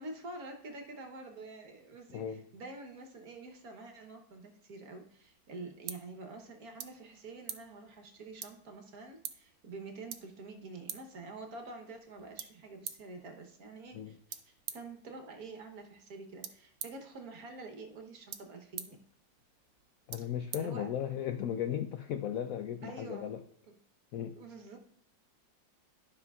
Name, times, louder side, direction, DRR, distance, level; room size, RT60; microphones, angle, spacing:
voice 1, 0.0-19.0 20.5-20.9 22.8-23.3 24.4-24.8, right 3 dB, 60° right, 1.4 m, -47 dB
sound 1, 5.1-21.4, right 9 dB, 80° right, 1.4 m, -49 dB
voice 2, 20.1-23.4 24.1-24.4, left 9 dB, 80° left, 0.7 m, -36 dB
12.0 x 5.9 x 2.3 m
omnidirectional pair, 2.0 m